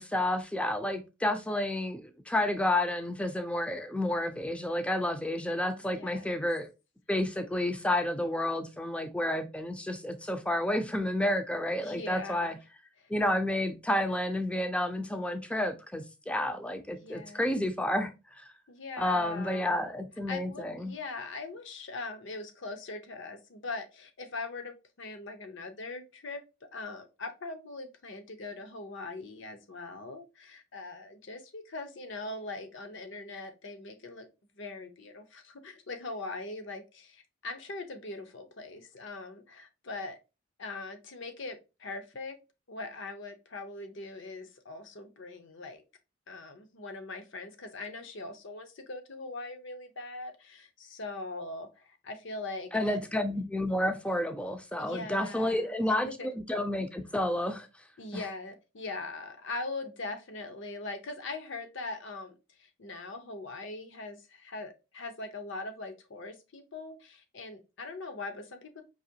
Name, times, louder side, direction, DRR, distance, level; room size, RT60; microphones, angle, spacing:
voice 1, 0.0-6.7 7.1-12.6 13.1-18.4 19.0-21.0 52.7-57.7 58.1-58.2, left 1 dB, 5° left, 0.5 m, -30 dB
voice 2, 5.8-6.4 11.8-12.6 13.0-13.1 17.0-17.5 18.7-19.8 20.3-26.4 26.7-34.3 34.6-40.2 40.6-42.3 42.7-45.8 46.3-53.0 54.8-55.7 56.0-56.3 58.0-68.8, left 3 dB, 65° left, 0.8 m, -41 dB
4.9 x 2.9 x 2.8 m
head